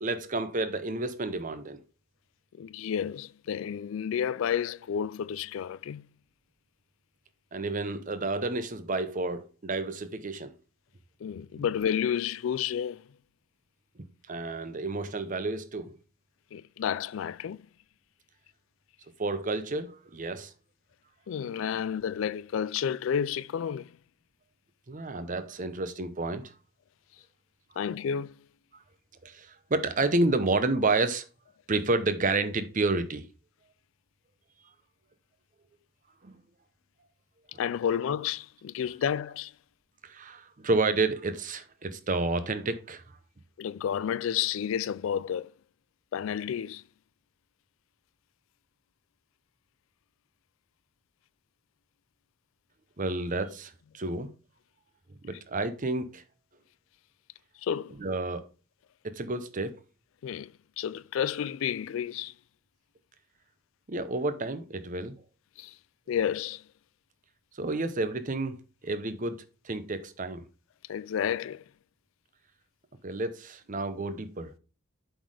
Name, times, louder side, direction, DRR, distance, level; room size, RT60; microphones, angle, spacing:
voice 1, 0.0-1.8 7.5-10.5 14.3-16.0 19.2-20.5 24.9-26.5 29.2-31.3 31.7-33.2 36.2-36.4 40.0-43.0 53.0-54.3 55.2-56.2 58.0-58.5 59.0-59.8 63.9-65.1 67.6-68.6 68.8-69.4 69.6-70.4 73.0-74.5, right 2 dB, 40° right, 0.8 m, -30 dB
voice 2, 2.6-6.1 11.2-13.0 16.5-17.6 21.3-24.0 27.8-28.4 37.6-39.5 43.6-45.5 46.1-46.8 57.6-58.0 60.2-60.5 60.8-62.3 65.6-65.8 66.1-66.6 70.9-71.6, left 8 dB, 70° left, 0.3 m, -31 dB
7.8 x 4.2 x 4.8 m
head